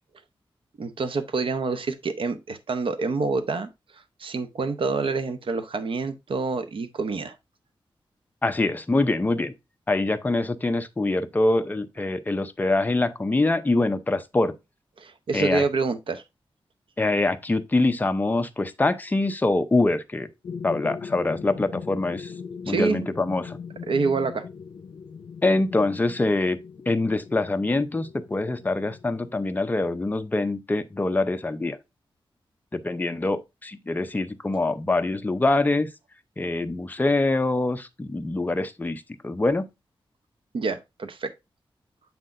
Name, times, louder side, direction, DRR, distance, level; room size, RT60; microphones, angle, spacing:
voice 1, 0.8-3.7 4.2-7.3 15.0-16.2 22.7-23.1 23.9-24.4 40.5-41.3, right 4 dB, 70° right, 0.8 m, -27 dB
voice 2, 8.4-9.5 9.9-14.5 15.3-15.6 17.0-20.3 20.6-22.3 22.7-23.6 25.4-26.6 26.9-31.8 32.7-35.9 36.4-39.7, left 2 dB, 20° left, 0.6 m, -24 dB
sound 1, 20.4-29.5, left 6 dB, 65° left, 0.7 m, -40 dB
7.3 x 5.8 x 2.5 m
wide cardioid pair, 135°, 9 cm